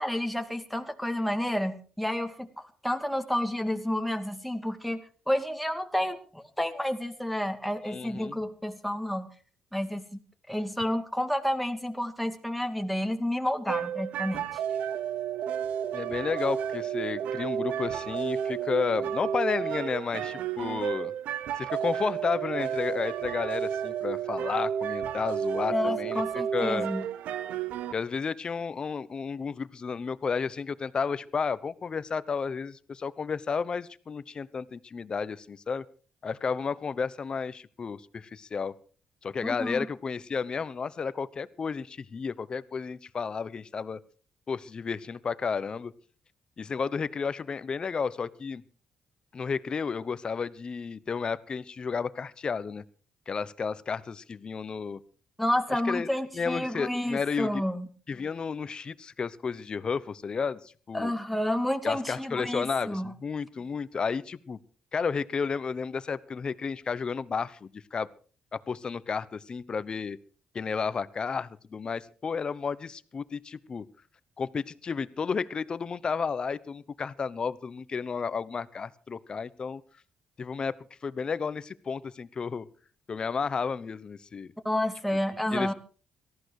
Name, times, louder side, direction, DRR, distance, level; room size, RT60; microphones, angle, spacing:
voice 1, 0.0-9.3 9.7-10.2 10.5-14.6 25.7-27.1 39.4-39.9 55.4-57.9 60.9-63.1 84.6-85.7, left 1 dB, ahead, 9 dB, 2.2 m, -30 dB
voice 2, 7.9-8.4 15.9-21.1 21.6-26.9 27.9-35.8 36.2-38.7 39.2-44.0 44.5-45.9 46.6-48.6 49.3-52.8 53.3-55.0 55.8-56.1 56.3-57.6 58.1-61.1 61.8-64.6 64.9-68.1 68.5-70.2 70.5-73.8 74.4-79.8 80.4-80.7 81.0-82.7 83.1-84.5 85.5-85.7, left 5 dB, 40° left, 17 dB, 1.0 m, -32 dB
sound 1, 13.7-27.9, right 9 dB, 85° right, 0.8 m, -32 dB
18.0 x 14.0 x 4.8 m, 0.40 s
cardioid pair, 95°, 2 cm